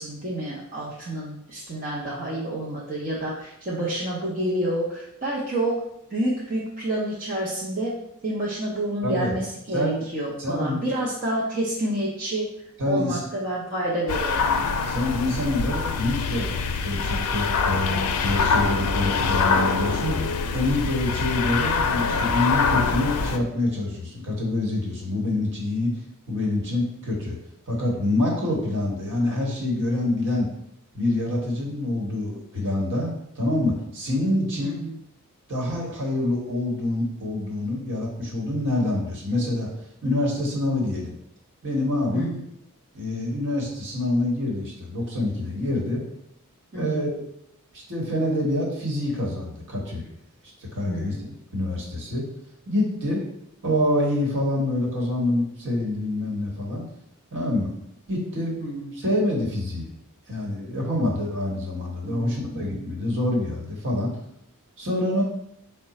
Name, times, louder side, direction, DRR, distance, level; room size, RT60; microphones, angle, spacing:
voice 1, 0.0-5.8 6.1-8.0 8.2-12.5 12.8-14.5 18.4-19.0 34.6-35.0 42.1-42.4 46.7-47.1 50.8-51.3 58.6-58.9 62.0-62.9, right 1 dB, 35° right, -6 dB, 0.6 m, -29 dB
voice 2, 9.0-9.3 9.7-10.0 10.4-10.8 12.8-13.2 14.8-16.5 16.8-25.9 26.3-27.4 27.7-30.5 30.9-34.8 35.5-39.7 40.0-41.2 41.6-42.3 42.9-46.0 46.7-47.1 47.7-50.0 50.6-52.2 52.7-53.2 53.6-56.9 57.3-57.7 58.1-58.6 58.9-59.9 60.3-64.1 64.8-65.2, left 1 dB, 55° right, -2 dB, 1.2 m, -26 dB
sound 1, 14.1-23.4, left 5 dB, 85° left, 0.4 m, -24 dB
4.7 x 2.2 x 4.1 m, 0.77 s
head